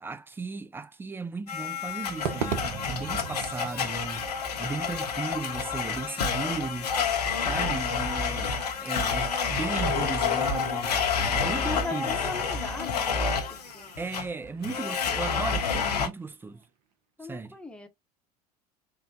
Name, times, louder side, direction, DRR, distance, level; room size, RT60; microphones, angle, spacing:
voice 1, 0.0-4.3 4.6-7.0 7.5-11.0 11.3-12.4 14.0-16.6 17.2-17.6, right 4 dB, 10° right, 0.3 m, -36 dB
Domestic sounds home sounds, 1.5-16.1, left 5 dB, 85° left, 0.7 m, -29 dB
Crowd / Fireworks, 2.2-16.6, right 7 dB, 65° right, 0.7 m, -42 dB
sound 1, 9.6-12.6, left 8 dB, 50° left, 0.8 m, -35 dB
voice 2, 11.2-13.3 13.7-13.9 14.7-15.2 17.2-17.9, left 3 dB, 5° left, 0.8 m, -40 dB
3.6 x 2.1 x 2.6 m
figure-of-eight pair, 70°, 20 cm